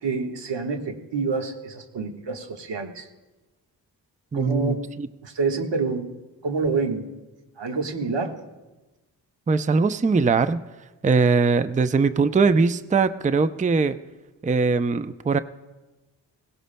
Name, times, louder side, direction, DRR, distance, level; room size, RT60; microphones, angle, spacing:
voice 1, 0.0-3.1 4.3-6.1 6.4-7.2 7.6-8.4, right 4 dB, 70° right, 4 dB, 1.5 m, -27 dB
voice 2, 4.3-5.1 9.5-10.6 11.0-14.0 14.4-15.4, right 4 dB, 15° right, 13 dB, 0.5 m, -21 dB
20.5 x 17.0 x 2.2 m, 1.1 s
supercardioid pair, 45°, 45 cm